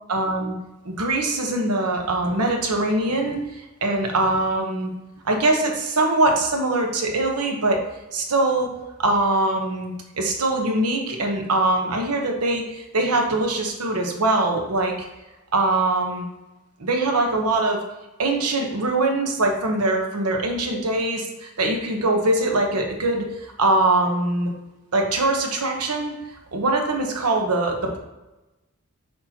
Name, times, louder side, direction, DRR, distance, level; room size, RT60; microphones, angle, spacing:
voice 1, 0.1-0.5 0.8-4.9 5.2-7.8 8.1-8.7 9.0-14.9 15.5-16.2 16.8-17.8 18.2-23.2 23.6-24.5 24.9-26.1 26.5-28.0, right 2 dB, 85° right, 2 dB, 1.0 m, -22 dB
6.6 x 5.6 x 2.9 m, 1.0 s
head